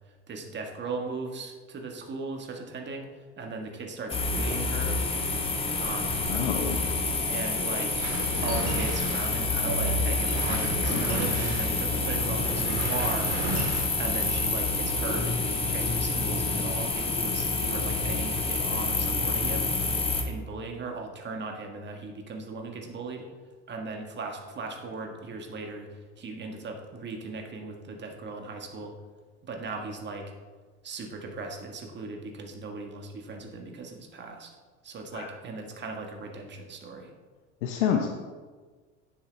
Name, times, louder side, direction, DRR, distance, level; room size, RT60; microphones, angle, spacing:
voice 1, 0.3-3.1 3.4-5.0 5.8-6.3 7.3-8.0 8.4-13.3 14.0-19.7 20.2-23.3 23.7-28.9 29.5-30.3 30.8-34.5 34.8-37.1, right 3 dB, 30° right, 3 dB, 1.7 m, -38 dB
sound 1, 4.1-20.2, left 3 dB, 15° left, 1.3 m, -28 dB
voice 2, 6.3-6.8 35.1-35.3 37.6-38.3, left 8 dB, 80° left, 2 dB, 0.9 m, -28 dB
sound 2, 7.9-13.8, right 3 dB, 70° right, 2.6 m, -34 dB
sound 3, 8.2-8.5 10.1-10.3 10.6-11.5, left 4 dB, 40° left, 1.8 m, -41 dB
9.5 x 7.6 x 3.4 m, 1.4 s
supercardioid pair, 100°, 35 cm